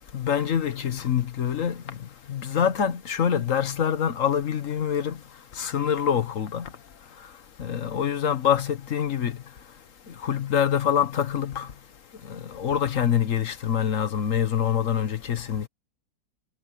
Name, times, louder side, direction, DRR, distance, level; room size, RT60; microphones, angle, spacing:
voice 1, 0.1-1.8 2.3-5.2 5.6-6.7 7.6-9.3 10.2-11.7 12.3-15.7, left 8 dB, 50° left, 1.4 m, -25 dB
omnidirectional pair, 2.0 m